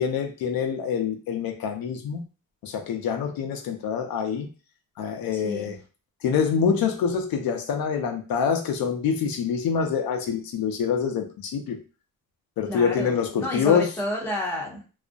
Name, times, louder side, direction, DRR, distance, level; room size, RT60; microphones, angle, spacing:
voice 1, 0.0-2.2 2.6-4.5 5.0-5.8 6.2-11.8 12.6-13.9, left 6 dB, 80° left, 5 dB, 0.5 m, -25 dB
voice 2, 5.3-5.7 12.7-14.8, left 1 dB, 5° left, -3 dB, 0.6 m, -31 dB
2.4 x 2.0 x 2.5 m, 0.33 s
wide cardioid pair, 160°, 35 cm